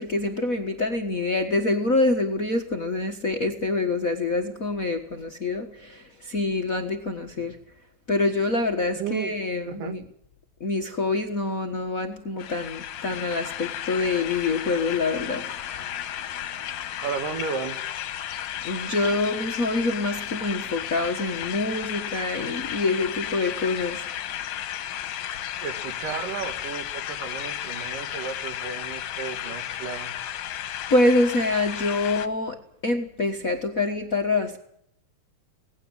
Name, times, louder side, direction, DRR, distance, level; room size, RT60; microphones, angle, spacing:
voice 1, 0.0-7.6 8.1-10.0 10.6-15.9 18.6-24.1 30.9-34.6, left 2 dB, 45° left, 1.1 m, -26 dB
voice 2, 9.0-9.3 9.7-10.0 17.0-17.8 25.6-30.2, right 6 dB, 85° right, 3.5 m, -33 dB
sound 1, 12.4-32.3, left 11 dB, 65° left, 2.1 m, -33 dB
19.0 x 16.5 x 9.7 m
omnidirectional pair, 3.7 m